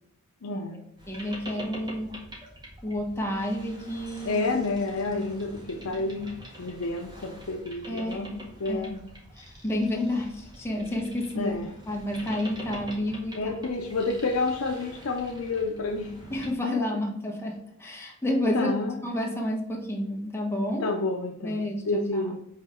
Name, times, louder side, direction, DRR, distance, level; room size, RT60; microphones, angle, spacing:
voice 1, 0.4-0.8 4.2-6.3 6.6-8.3 8.6-9.1 11.4-11.7 13.3-16.1 16.7-16.8 18.5-19.0 20.8-22.4, left 3 dB, 80° left, 2 dB, 0.7 m, -29 dB
Boat Water vehicle, 1.0-16.5, equal, 20° right, 1.8 m, -45 dB
voice 2, 1.1-2.1 2.8-4.4 7.9-8.3 8.7-8.8 9.4-11.5 11.9-13.5 16.3-18.7 19.0-20.9 21.4-22.3, left 1 dB, 10° left, 0 dB, 1.4 m, -30 dB
5.7 x 4.1 x 5.7 m, 0.74 s
head